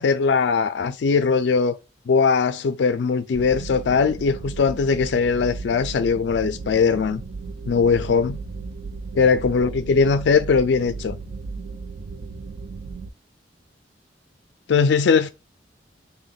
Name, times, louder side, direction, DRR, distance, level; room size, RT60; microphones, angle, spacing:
voice 1, 0.0-1.8 2.1-7.2 7.7-8.4 9.2-11.2 14.7-15.3, left 5 dB, 65° left, 0.4 m, -20 dB
sound 1, 3.3-13.1, right 4 dB, 50° right, 0.3 m, -35 dB
3.4 x 2.2 x 3.9 m
head